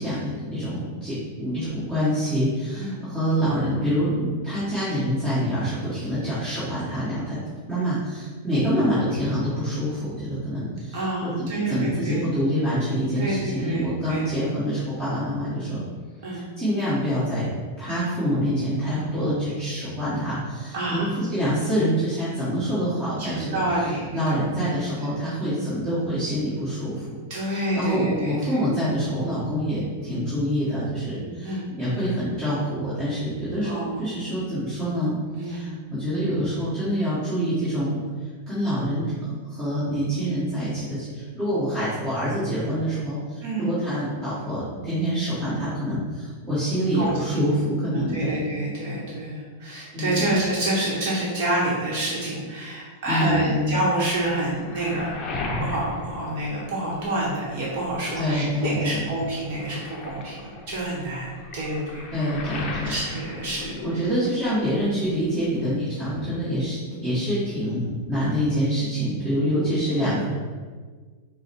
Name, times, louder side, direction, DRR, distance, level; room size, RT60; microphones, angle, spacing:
voice 1, 0.0-7.4 7.7-15.8 16.6-17.4 17.8-23.6 24.1-27.0 27.5-35.1 35.4-38.0 38.5-48.4 49.9-50.4 53.1-53.8 58.1-59.0 62.1-62.9 63.8-66.8 67.0-70.2, equal, 20° right, -13 dB, 1.4 m, -26 dB
voice 2, 10.9-12.2 13.2-14.3 16.2-16.4 20.7-21.1 23.2-24.4 27.3-28.6 31.2-31.7 33.6-34.0 35.4-35.7 43.4-43.7 46.9-47.6 47.9-55.2 55.6-62.1 62.8-64.0 66.9-67.0 70.0-70.1, right 1 dB, 50° right, -5 dB, 1.0 m, -28 dB
Waves surf, 54.0-57.2 57.6-64.5 64.8-65.7, left 2 dB, 30° left, 0.6 m, -36 dB
4.7 x 2.1 x 4.2 m, 1.5 s
supercardioid pair, 150°, 0 cm